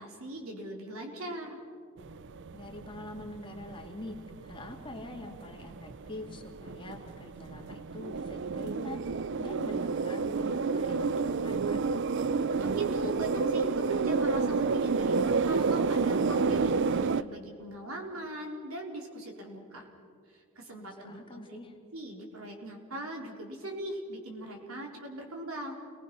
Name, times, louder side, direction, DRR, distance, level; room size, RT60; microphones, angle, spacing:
voice 1, 0.0-1.6 12.5-19.9 20.3-21.6 21.9-25.7, right 1 dB, 75° right, 1 dB, 4.1 m, -40 dB
sound 1, 2.0-17.2, right 4 dB, 55° right, 0.5 m, -30 dB
voice 2, 2.5-4.2 4.4-9.0 9.4-11.9 20.8-21.7, left 1 dB, 25° left, 2 dB, 2.3 m, -44 dB
29.0 x 20.0 x 6.1 m, 2.2 s
head